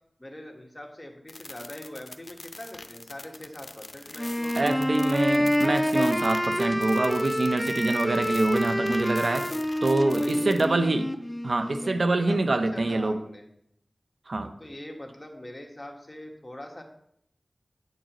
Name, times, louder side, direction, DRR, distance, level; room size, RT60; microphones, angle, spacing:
voice 1, 0.2-4.7 9.1-9.5 10.1-10.7 12.3-13.5 14.6-16.8, left 1 dB, 25° left, 2 dB, 1.4 m, -42 dB
sound 1, 1.3-10.6, left 2 dB, 55° left, 0.6 m, -44 dB
Wind instrument woodwind instrument, 4.1-12.0, equal, 5° left, 0.6 m, -27 dB
voice 2, 4.6-9.4 9.8-11.0 11.4-13.2 14.3-14.5, right 2 dB, 75° right, 8 dB, 0.6 m, -25 dB
8.8 x 6.5 x 3.0 m, 0.72 s
wide cardioid pair, 55°, 0 cm